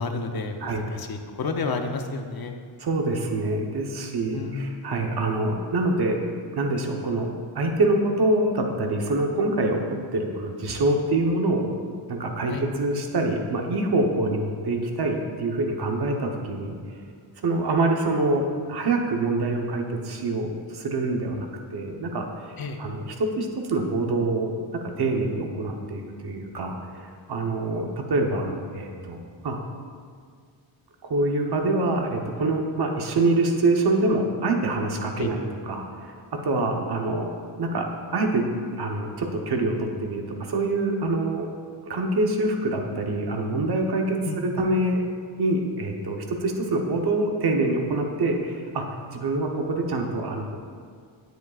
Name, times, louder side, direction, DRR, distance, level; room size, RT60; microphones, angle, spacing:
voice 1, 0.0-2.5 4.3-4.7 12.5-12.6 22.6-22.8 35.2-35.3 44.2-44.4, left 4 dB, 45° left, 5 dB, 0.8 m, -31 dB
voice 2, 2.8-6.2 6.5-11.7 12.1-16.8 17.4-24.5 24.8-29.6 31.0-36.1 36.4-37.3 37.6-37.9 38.1-38.4 38.8-41.5 41.9-45.0 45.4-50.5, right 2 dB, 50° right, 2 dB, 1.1 m, -25 dB
9.4 x 8.0 x 2.4 m, 2.1 s
cardioid pair, 95°, 49 cm